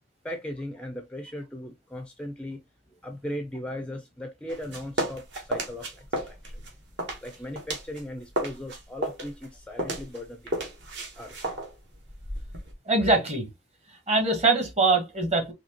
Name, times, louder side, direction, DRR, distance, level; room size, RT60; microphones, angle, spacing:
voice 1, 0.2-2.6 3.0-6.5 7.2-10.7 11.2-11.4, left 1 dB, 5° left, 0.4 m, -38 dB
sound 1, 4.5-8.0 8.3-12.7, right 1 dB, 60° right, 1.2 m, -33 dB
voice 2, 12.8-13.5 14.1-15.5, right 3 dB, 35° right, 1.2 m, -23 dB
4.2 x 2.8 x 2.8 m
head